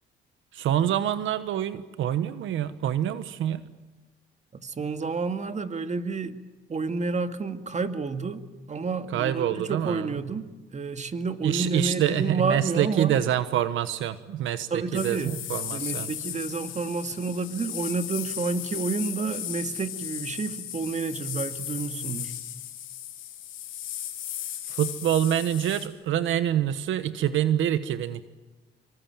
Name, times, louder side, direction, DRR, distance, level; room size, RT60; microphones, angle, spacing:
voice 1, 0.5-3.6 9.1-10.1 11.4-16.1 24.7-28.2, right 11 dB, 80° right, 12 dB, 1.2 m, -26 dB
voice 2, 4.5-6.4 6.7-13.2 14.7-15.4 15.7-22.3, right 4 dB, 35° right, 8 dB, 2.1 m, -30 dB
sound 1, 14.9-25.9, left 12 dB, 85° left, 3.9 m, -36 dB
26.5 x 24.0 x 9.1 m, 1.2 s
cardioid pair, 90°, 20 cm